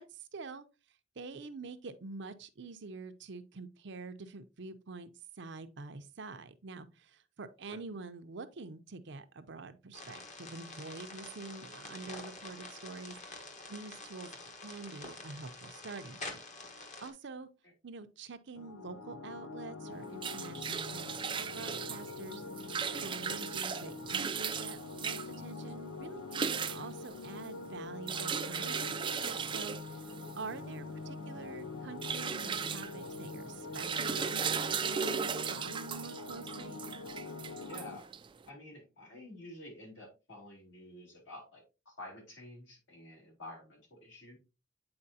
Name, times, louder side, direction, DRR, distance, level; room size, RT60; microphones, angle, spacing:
voice 1, 0.1-0.7 1.2-5.1 5.4-16.4 17.0-17.5 17.8-22.4 22.7-30.0 30.4-36.8, right 3 dB, 65° right, 0.7 m, -46 dB
sound 1, 9.9-17.1, left 2 dB, 40° left, 1.3 m, -47 dB
sound 2, 18.5-38.0, left 3 dB, 85° left, 0.5 m, -44 dB
sound 3, 19.9-38.4, right 6 dB, 25° right, 0.4 m, -37 dB
voice 2, 37.7-38.1 38.5-44.4, left 1 dB, 70° left, 3.6 m, -50 dB
8.7 x 4.4 x 2.7 m
head